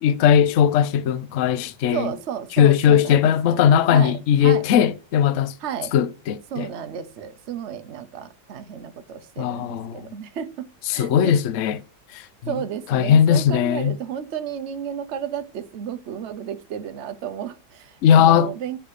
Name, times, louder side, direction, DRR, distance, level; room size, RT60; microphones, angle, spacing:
voice 1, 0.0-2.1 2.6-5.5 5.9-6.7 9.4-10.0 10.9-11.8 12.1-12.2 12.9-14.0 18.0-18.5, left 9 dB, 85° left, 0.6 m, -18 dB
voice 2, 1.9-3.6 3.9-4.7 5.6-5.9 6.5-11.3 12.5-18.8, right 9 dB, 65° right, 0.7 m, -33 dB
7.2 x 6.9 x 4.9 m
omnidirectional pair, 2.2 m